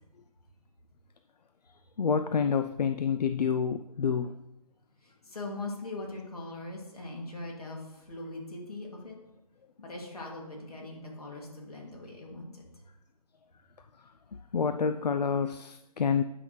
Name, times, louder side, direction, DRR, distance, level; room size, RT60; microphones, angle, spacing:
voice 1, 2.0-4.4 14.5-16.2, left 6 dB, 85° left, 10 dB, 0.4 m, -28 dB
voice 2, 5.0-9.2 9.8-12.6, left 2 dB, 65° left, -1 dB, 2.6 m, -41 dB
9.5 x 5.6 x 3.2 m, 0.93 s
figure-of-eight pair, 170°, 20 cm